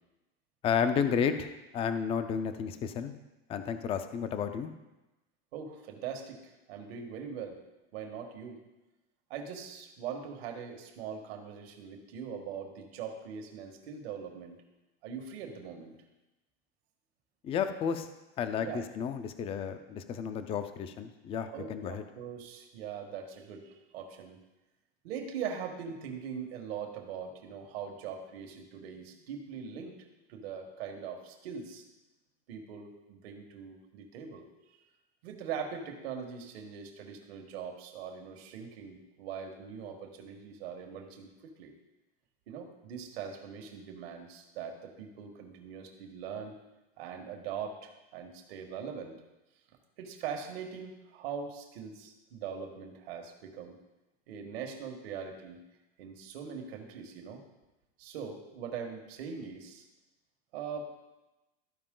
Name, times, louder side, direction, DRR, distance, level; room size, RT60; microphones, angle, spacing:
voice 1, 0.6-3.1 3.5-4.7 17.4-18.1 18.4-22.0, left 7 dB, 20° left, 9 dB, 0.4 m, -32 dB
voice 2, 5.5-7.6 7.9-8.6 9.3-14.6 15.0-15.9 18.6-18.9 21.5-24.4 25.0-29.9 30.3-31.8 32.5-34.5 35.2-41.7 42.5-46.5 47.0-49.1 50.0-53.8 54.3-55.6 56.0-57.4 58.0-59.8 60.5-60.9, right 7 dB, 75° right, 3 dB, 1.6 m, -41 dB
13.5 x 4.7 x 3.8 m, 1.0 s
supercardioid pair, 145°, 31 cm